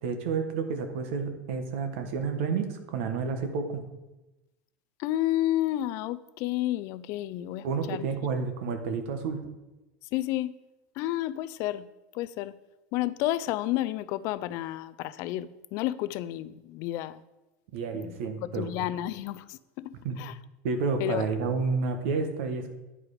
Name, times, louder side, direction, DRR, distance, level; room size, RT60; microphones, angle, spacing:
voice 1, 0.0-3.8 7.6-9.4 17.7-18.7 20.0-20.2 20.6-22.7, right 5 dB, 70° right, 1.2 m, -30 dB
voice 2, 5.0-8.1 10.0-10.6 11.0-11.9 12.1-12.6 12.9-17.2 18.0-18.1 18.5-20.4 21.0-21.3, left 14 dB, 45° left, 0.3 m, -31 dB
10.0 x 4.9 x 4.9 m
supercardioid pair, 160°, 7 cm